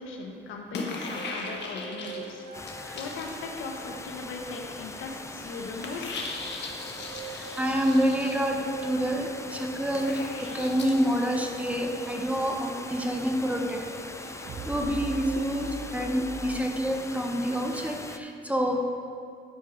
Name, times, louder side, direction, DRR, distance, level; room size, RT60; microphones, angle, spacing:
voice 1, 0.0-2.4 2.9-6.2, left 3 dB, 85° left, 2 dB, 1.1 m, -38 dB
sound 1, 0.7-3.8 4.2-4.4 5.8-8.4 9.9-10.9, left 3 dB, 60° left, 1.3 m, -38 dB
sound 2, 1.1-16.6, right 4 dB, 65° right, 1.2 m, -43 dB
sound 3, 2.5-18.2, left 2 dB, 15° left, 0.5 m, -42 dB
voice 2, 7.2-13.9 14.4-19.0, equal, 5° right, 2 dB, 1.0 m, -28 dB
11.0 x 4.8 x 5.0 m, 2.4 s
cardioid pair, 90°, 20 cm